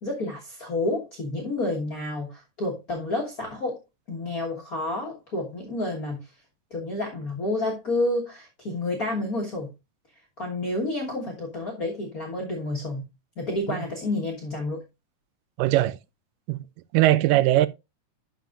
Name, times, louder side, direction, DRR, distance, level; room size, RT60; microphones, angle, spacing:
voice 1, 0.0-3.8 4.1-6.2 6.7-9.7 10.4-13.0 13.4-14.8, left 2 dB, 50° left, 1.1 m, -29 dB
voice 2, 15.6-16.0 16.5-16.6 16.9-17.7, right 15 dB, 90° right, 2.2 m, -20 dB
11.5 x 5.7 x 2.4 m
omnidirectional pair, 3.7 m